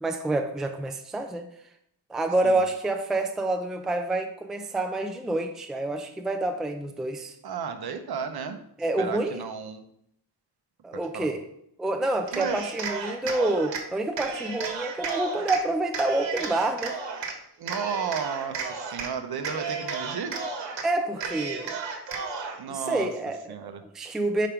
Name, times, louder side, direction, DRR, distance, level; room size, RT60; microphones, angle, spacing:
voice 1, 0.0-1.5 2.1-7.3 8.8-9.4 10.8-11.4 11.8-17.0 20.8-21.8 22.7-23.4 23.6-24.5, right 2 dB, ahead, 5 dB, 0.4 m, -28 dB
voice 2, 7.4-8.6 9.0-9.8 10.9-11.3 12.3-12.7 17.6-20.4 22.6-23.1 23.5-23.8, right 6 dB, 60° right, 8 dB, 0.8 m, -33 dB
Cheering, 12.2-13.8 14.2-15.6 15.9-17.3 17.7-19.1 19.4-20.8 21.2-22.6, right 5 dB, 75° right, 1.3 m, -33 dB
5.2 x 4.9 x 5.8 m, 0.73 s
wide cardioid pair, 165°, 43 cm